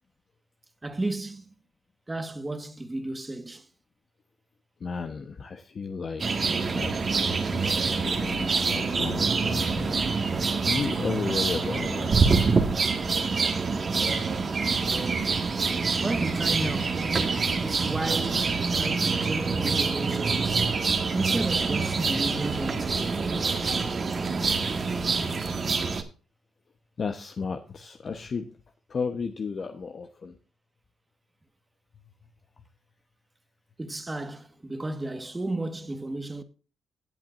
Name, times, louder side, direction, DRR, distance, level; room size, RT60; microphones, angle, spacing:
voice 1, 0.8-1.5 2.1-3.7 16.0-17.1 17.6-20.8 21.1-23.2 33.8-36.4, right 2 dB, 15° right, 1.6 m, -33 dB
voice 2, 4.8-6.2 6.7-7.0 7.3-12.4 27.0-28.5 28.9-30.3, left 5 dB, 45° left, 1.0 m, -34 dB
sound 1, 6.2-26.0, right 4 dB, 40° right, 1.8 m, -26 dB
17.5 x 7.7 x 2.6 m
cardioid pair, 90°, 0 cm